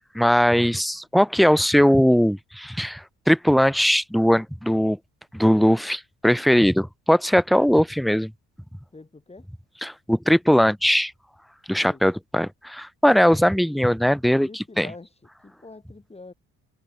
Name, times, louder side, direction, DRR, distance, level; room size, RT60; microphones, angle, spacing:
voice 1, 0.1-5.0 5.3-8.3 9.8-11.1 11.7-14.5 14.8-14.9, equal, ahead, 0.3 m, -20 dB
voice 2, 8.9-9.5 11.8-12.0 14.4-16.3, left 3 dB, 20° left, 5.7 m, -44 dB
open air
cardioid pair, 90°, 30 cm